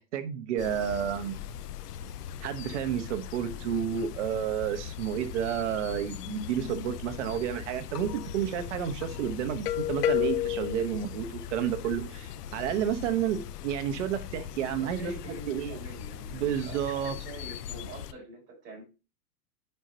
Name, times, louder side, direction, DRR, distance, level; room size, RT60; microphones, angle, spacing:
voice 1, 0.0-1.4 2.4-15.1 15.5-15.8 16.3-17.2, right 9 dB, 50° right, 8 dB, 1.1 m, -31 dB
sound 1, 0.6-18.1, left 11 dB, 75° left, 0.7 m, -37 dB
voice 2, 14.7-18.8, right 2 dB, 20° right, -2 dB, 4.0 m, -46 dB
10.5 x 4.5 x 2.8 m, 0.30 s
hypercardioid pair, 160°, 47 cm